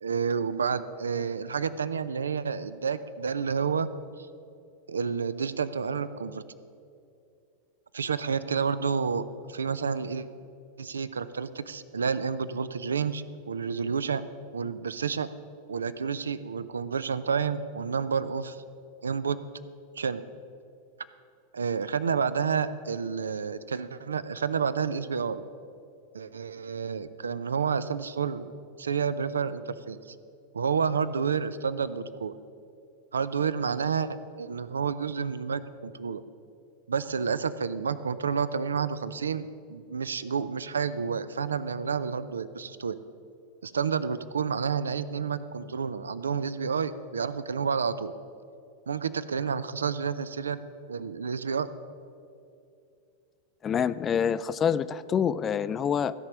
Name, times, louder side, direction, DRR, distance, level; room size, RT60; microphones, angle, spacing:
voice 1, 0.0-3.9 4.2-4.3 4.9-6.4 7.9-10.3 10.8-14.2 14.5-15.3 15.7-18.6 19.0-19.4 20.0-20.2 21.5-25.4 26.1-28.5 28.8-30.2 30.5-32.3 33.1-36.2 36.9-43.0 43.6-48.1 48.9-50.6 50.9-51.7, right 6 dB, 70° right, 15 dB, 0.4 m, -30 dB
voice 2, 53.6-56.1, left 7 dB, 25° left, 15 dB, 0.3 m, -26 dB
16.0 x 5.4 x 6.4 m, 2.6 s
figure-of-eight pair, 90°, 0 cm